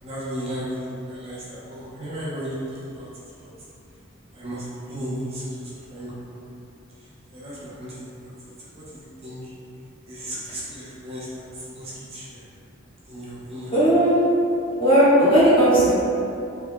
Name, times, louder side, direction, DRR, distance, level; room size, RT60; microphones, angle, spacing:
voice 1, 0.0-3.1 3.4-3.5 4.3-5.4 5.9-6.4 7.3-8.3 8.7-9.5 10.1-12.4 13.1-13.7, equal, 30° right, -9 dB, 0.8 m, -35 dB
voice 2, 13.7-14.2 14.8-15.9, right 1 dB, 25° left, -11 dB, 1.3 m, -16 dB
5.1 x 3.5 x 2.3 m, 2.7 s
head